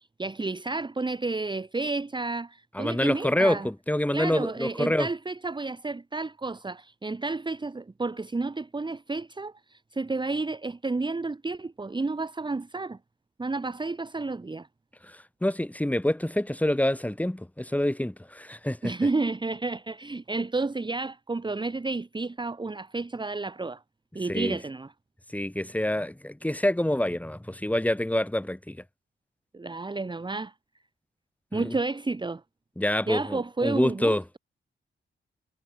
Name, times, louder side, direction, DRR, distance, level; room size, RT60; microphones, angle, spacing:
voice 1, 0.0-3.7 4.1-13.0 13.4-14.7 18.8-23.8 24.1-24.9 29.5-30.5 31.5-32.4 33.1-34.4, right 3 dB, 25° right, 1.4 m, -31 dB
voice 2, 2.7-5.1 15.0-18.9 24.3-24.6 25.3-28.8 31.5-31.8 32.8-34.2, left 1 dB, 5° left, 4.3 m, -27 dB
wide cardioid pair, 110°, 20 cm